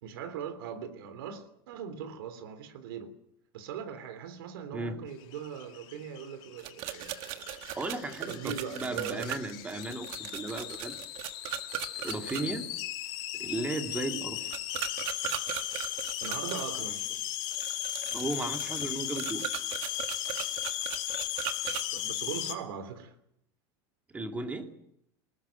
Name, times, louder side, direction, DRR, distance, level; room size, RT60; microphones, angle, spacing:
voice 1, 0.0-3.1 3.5-7.6 8.3-9.4 12.3-12.6 16.2-17.2 21.9-23.1, right 7 dB, 90° right, 3.3 m, -40 dB
sound 1, 5.2-22.6, left 13 dB, 45° left, 2.5 m, -37 dB
sound 2, 6.6-12.4 14.5-16.7 17.5-21.8, right 14 dB, 50° right, 1.5 m, -38 dB
voice 2, 7.7-11.0 12.0-12.6 13.4-14.6 18.1-19.5 24.1-24.7, right 2 dB, 10° right, 2.3 m, -35 dB
20.5 x 18.5 x 9.2 m
supercardioid pair, 155°, 12 cm